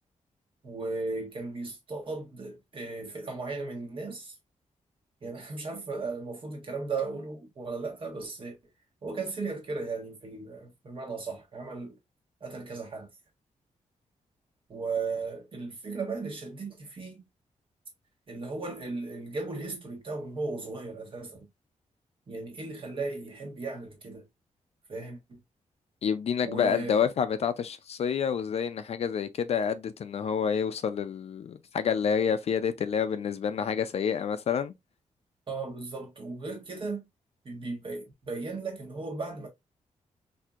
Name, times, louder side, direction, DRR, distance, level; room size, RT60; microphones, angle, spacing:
voice 1, 0.6-4.4 5.2-8.6 9.0-12.0 12.4-13.1 14.7-17.2 18.3-21.5 22.3-24.2 24.9-25.4 26.4-27.0 35.5-37.0 37.4-39.5, right 3 dB, 45° right, 1.3 m, -36 dB
voice 2, 26.0-34.7, left 7 dB, 55° left, 0.4 m, -28 dB
4.3 x 2.7 x 2.4 m
wide cardioid pair, 155°, 13 cm